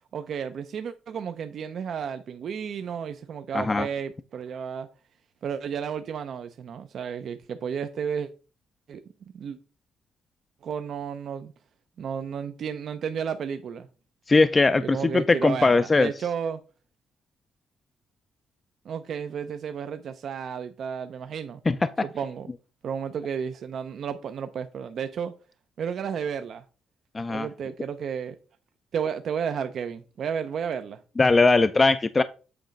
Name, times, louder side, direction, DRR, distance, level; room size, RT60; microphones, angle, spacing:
voice 1, 0.1-4.9 5.4-8.3 8.9-9.0 9.3-9.6 10.6-11.5 12.0-13.9 14.8-16.6 18.9-21.6 22.0-22.5 22.8-25.3 25.8-26.6 27.3-28.4 28.9-31.0, right 7 dB, 60° right, 0.4 m, -32 dB
voice 2, 3.5-3.9 14.3-16.1 21.7-21.9 27.1-27.5 31.2-32.2, left 3 dB, 25° left, 0.3 m, -20 dB
7.7 x 3.0 x 5.1 m
cardioid pair, 90°, 0 cm